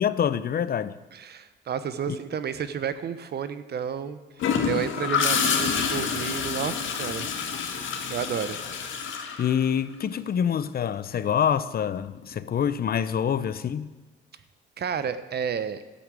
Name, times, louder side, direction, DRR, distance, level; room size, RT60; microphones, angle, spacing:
voice 1, 0.0-0.9 2.1-2.2 9.4-13.9, left 8 dB, 50° left, 0.7 m, -26 dB
voice 2, 1.1-8.6 14.8-15.8, right 8 dB, 55° right, 1.0 m, -32 dB
Gurgling / Toilet flush, 4.4-10.1 12.1-12.4, left 6 dB, 75° left, 1.8 m, -28 dB
13.0 x 8.1 x 7.6 m
cardioid pair, 90°, 20 cm